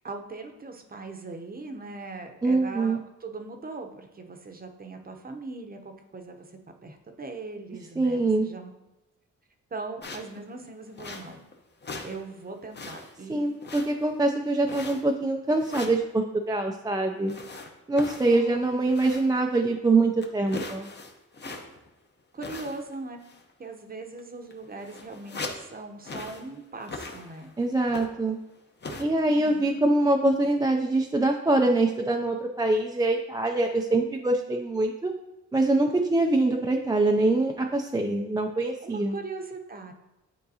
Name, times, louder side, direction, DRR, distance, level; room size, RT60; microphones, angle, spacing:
voice 1, 0.0-6.5 6.8-8.7 9.7-11.4 12.0-13.4 18.2-18.7 22.3-23.2 23.6-27.5 29.3-29.7 38.8-39.9, right 3 dB, 30° right, 5 dB, 0.8 m, -40 dB
voice 2, 2.4-3.0 8.0-8.5 13.3-17.3 17.9-20.9 27.6-28.4 29.0-35.1 35.5-39.2, right 2 dB, 15° right, 2 dB, 0.4 m, -24 dB
sound 1, 10.0-10.4 11.0-11.5 11.8-12.2 12.5-13.2 13.6-14.2 14.6-15.2 15.6-16.0 17.3-19.4 19.7-19.8 20.2-21.9 22.4-23.0 23.2-23.5 24.2-24.3 24.5-25.7 26.0-26.5 26.8-27.5 27.9-28.3 28.8-29.0, left 3 dB, 35° left, 0.8 m, -39 dB
9.3 x 3.7 x 2.8 m, 0.97 s
cardioid pair, 100°, 31 cm